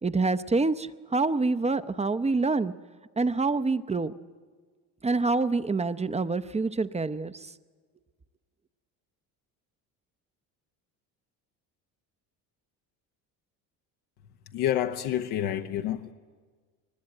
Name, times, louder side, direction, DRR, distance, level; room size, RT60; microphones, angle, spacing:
voice 1, 0.0-2.7 3.2-4.1 5.0-7.5, right 3 dB, 15° right, 0.7 m, -26 dB
voice 2, 14.5-16.1, left 11 dB, 80° left, 1.1 m, -28 dB
22.5 x 20.0 x 8.9 m
supercardioid pair, 90°, 39 cm